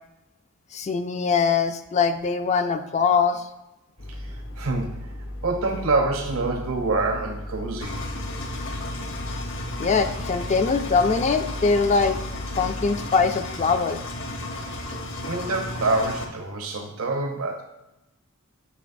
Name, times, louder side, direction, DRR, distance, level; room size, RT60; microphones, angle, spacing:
voice 1, 0.7-3.4 9.8-12.2 12.5-14.0, left 5 dB, 30° left, 8 dB, 0.3 m, -22 dB
sound 1, 4.0-13.0, left 1 dB, 85° left, 1.2 m, -36 dB
voice 2, 4.1-5.1 5.4-8.0 14.5-14.7 15.2-17.6, right 3 dB, 80° right, 2 dB, 0.9 m, -26 dB
Engine, 7.8-16.2, left 2 dB, 60° left, 1.0 m, -34 dB
8.2 x 5.9 x 2.6 m, 0.97 s
head